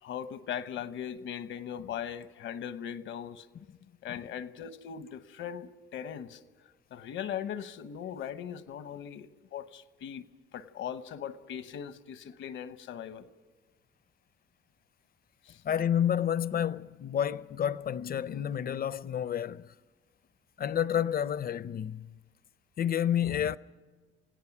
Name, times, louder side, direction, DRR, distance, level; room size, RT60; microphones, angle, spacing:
voice 1, 0.0-3.5 4.0-6.4 6.9-10.2 10.5-13.3 15.4-15.6, left 9 dB, 75° left, 1.0 m, -39 dB
voice 2, 15.6-19.7 20.6-22.1 22.8-23.6, left 9 dB, 50° left, 0.6 m, -30 dB
28.5 x 17.0 x 6.0 m
cardioid pair, 90°, 20 cm